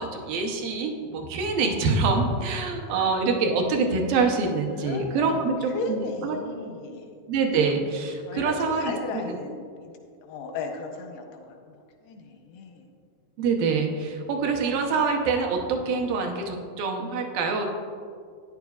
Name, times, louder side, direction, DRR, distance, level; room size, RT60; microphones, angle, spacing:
voice 1, 0.0-6.4 7.3-8.9 9.3-9.4 13.4-17.7, right 4 dB, 75° right, 3 dB, 2.3 m, -25 dB
voice 2, 2.9-3.2 4.7-7.2 8.2-9.9 10.2-11.8 12.0-12.9 14.8-14.9, left 4 dB, 85° left, 3 dB, 2.9 m, -36 dB
13.5 x 9.6 x 2.4 m, 2.2 s
omnidirectional pair, 4.5 m